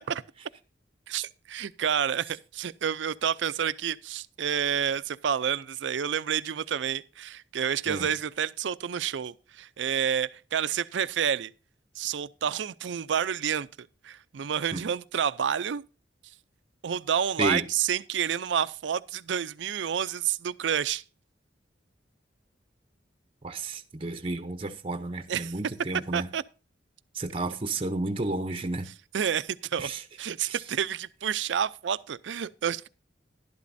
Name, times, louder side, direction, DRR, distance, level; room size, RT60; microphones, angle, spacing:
voice 1, 1.1-11.5 12.0-15.8 16.8-21.0 25.3-25.5 26.1-26.4 29.1-29.9 30.2-32.9, right 8 dB, 75° right, 0.4 m, -29 dB
voice 2, 23.4-26.3 27.1-28.9 29.8-30.0 30.4-30.6, right 2 dB, 30° right, 0.7 m, -31 dB
11.5 x 11.5 x 2.6 m
head